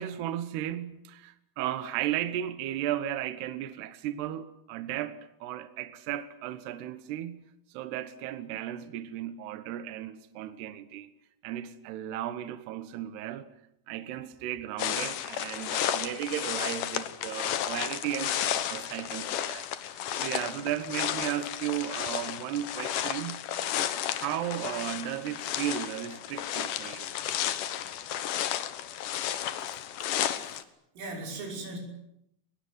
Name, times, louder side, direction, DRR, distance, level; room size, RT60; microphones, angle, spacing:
voice 1, 0.0-11.1 11.4-13.5 13.9-23.5 24.1-27.1, right 11 dB, 70° right, 2.9 m, -35 dB
sound 1, 14.8-30.6, left 11 dB, 80° left, 1.9 m, -33 dB
voice 2, 30.1-30.7 31.0-31.8, right 2 dB, 85° right, 8.3 m, -39 dB
23.5 x 21.0 x 9.6 m
omnidirectional pair, 5.6 m